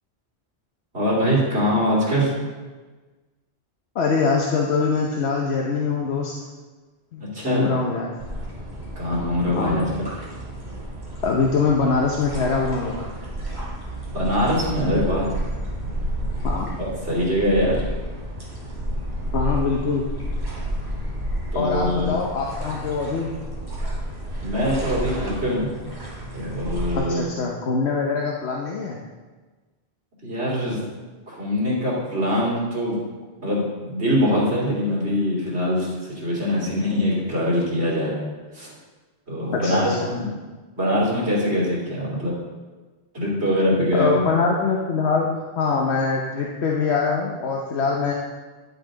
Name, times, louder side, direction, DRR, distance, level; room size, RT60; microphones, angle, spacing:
voice 1, 0.9-2.3 7.2-7.7 8.9-10.1 14.1-15.3 16.8-17.8 21.5-22.2 24.4-25.7 26.3-27.3 30.2-30.8 31.3-33.0 33.4-38.2 38.5-38.7 39.3-40.3 40.8-42.4 43.1-44.2, equal, 80° right, -6 dB, 3.4 m, -23 dB
voice 2, 3.9-6.3 7.1-8.1 9.6-9.8 11.2-13.0 16.4-16.8 19.3-20.0 21.5-23.3 27.0-29.0 39.5-40.1 43.9-45.3 45.6-48.1, left 4 dB, 80° left, -1 dB, 1.1 m, -23 dB
sound 1, 8.2-27.0, equal, 45° right, 3.4 m, -31 dB
10.5 x 8.1 x 3.8 m, 1.3 s
omnidirectional pair, 1.1 m